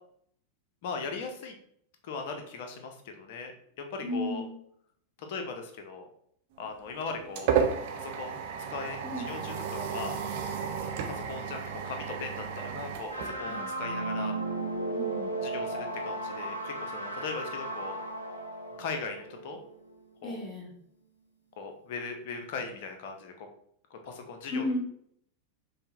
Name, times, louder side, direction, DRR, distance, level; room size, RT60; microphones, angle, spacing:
voice 1, 0.8-1.5 2.0-3.5 3.8-4.4 5.2-6.1 6.6-7.5 7.9-8.4 8.7-10.2 11.1-14.4 15.4-17.9 18.8-19.6 20.2-20.4 21.6-23.5 23.9-24.6, left 4 dB, 50° left, 4 dB, 0.6 m, -39 dB
voice 2, 4.0-4.5 9.0-9.3 13.4-13.7 14.9-15.4 20.2-20.7 24.5-24.8, left 1 dB, 5° right, -4 dB, 1.2 m, -34 dB
sound 1, 6.6-14.0, right 7 dB, 50° right, 0.4 m, -33 dB
sound 2, 13.1-20.0, right 2 dB, 90° left, 0.6 m, -35 dB
5.3 x 2.1 x 2.8 m, 0.67 s
figure-of-eight pair, 90°, 0 cm